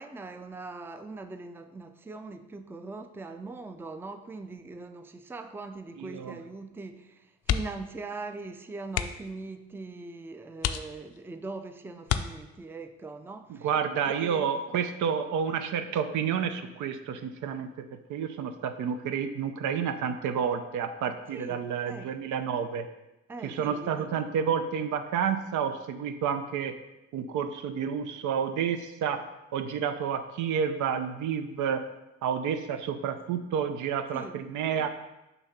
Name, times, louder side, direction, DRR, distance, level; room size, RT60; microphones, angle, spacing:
voice 1, 0.0-13.7 14.0-14.5 21.3-22.1 23.3-24.2 34.1-34.4, right 3 dB, 10° right, 8 dB, 0.4 m, -41 dB
voice 2, 6.0-6.4 13.6-22.9 23.4-26.8 27.1-31.8 32.2-34.9, right 7 dB, 80° right, 9 dB, 0.6 m, -30 dB
sound 1, 7.4-7.9 8.2-8.4 8.9-9.4 10.0-10.1 10.6-11.3 12.0-12.8 14.4-14.7 15.1-15.2, left 9 dB, 55° left, 0.5 m, -31 dB
6.9 x 2.7 x 5.8 m, 0.97 s
cardioid pair, 90°, 30 cm